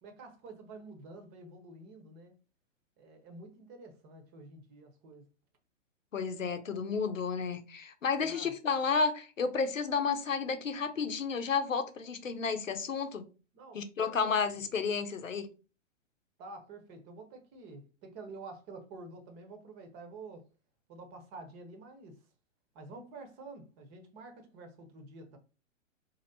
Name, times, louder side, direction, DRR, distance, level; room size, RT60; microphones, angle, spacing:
voice 1, 0.0-2.3 3.0-5.2 8.2-8.5 13.5-14.4 16.4-20.4 20.9-22.2 22.7-25.4, right 3 dB, 25° right, 0.9 m, -49 dB
voice 2, 6.1-13.2 13.7-15.5, left 5 dB, 85° left, 0.8 m, -32 dB
3.0 x 2.8 x 3.9 m
figure-of-eight pair, 120°, 38 cm